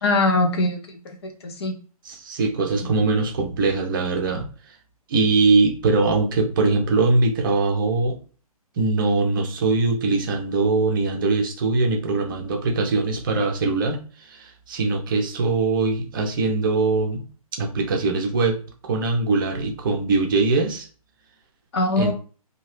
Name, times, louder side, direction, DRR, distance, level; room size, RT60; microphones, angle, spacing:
voice 1, 0.0-1.8 21.7-22.1, left 2 dB, 45° left, 5 dB, 0.7 m, -22 dB
voice 2, 2.0-4.5 5.1-8.2 8.8-14.0 14.3-17.2 17.6-20.9 22.0-22.1, right 3 dB, 35° right, 3 dB, 0.6 m, -22 dB
2.7 x 2.3 x 3.2 m, 0.38 s
figure-of-eight pair, 130°, 19 cm